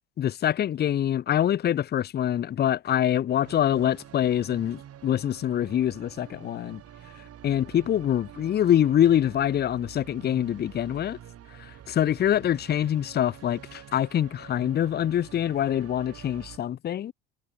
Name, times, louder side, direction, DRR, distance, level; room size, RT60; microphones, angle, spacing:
voice 1, 0.2-6.8 7.4-11.2 11.9-17.1, left 10 dB, 35° left, 0.6 m, -25 dB
sound 1, 3.4-16.6, right 10 dB, 50° right, 7.1 m, -47 dB
supercardioid pair, 90°, 30 cm